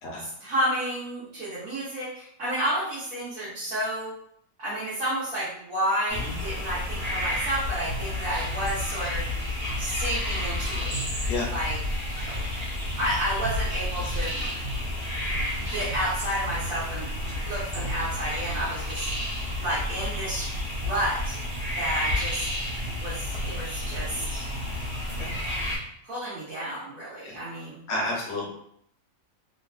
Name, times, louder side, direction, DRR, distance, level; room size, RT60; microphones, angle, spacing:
voice 1, 0.2-4.1 4.6-9.2 9.8-10.9 11.5-11.8 13.0-14.5 15.7-17.1 17.4-19.1 19.6-21.4 21.8-22.5 23.0-24.5 26.0-27.9, equal, 85° right, -11 dB, 1.4 m, -31 dB
sound 1, 6.1-25.8, left 1 dB, 55° right, 1.4 m, -31 dB
voice 2, 27.9-28.5, left 2 dB, 60° left, -2 dB, 1.0 m, -31 dB
3.3 x 2.3 x 2.3 m, 0.68 s
omnidirectional pair, 1.4 m